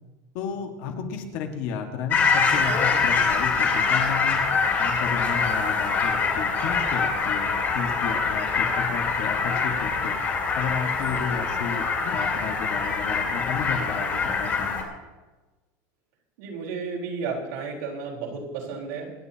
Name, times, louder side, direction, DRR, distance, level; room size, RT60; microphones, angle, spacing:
voice 1, 0.3-4.4 4.8-10.2 10.5-14.8, left 6 dB, 50° left, 3 dB, 1.7 m, -32 dB
sound 1, 2.1-14.8, left 5 dB, 25° left, 2.4 m, -24 dB
voice 2, 16.4-19.1, right 5 dB, 70° right, -3 dB, 4.0 m, -32 dB
26.5 x 9.6 x 2.9 m, 1.2 s
cardioid pair, 180°, 9 cm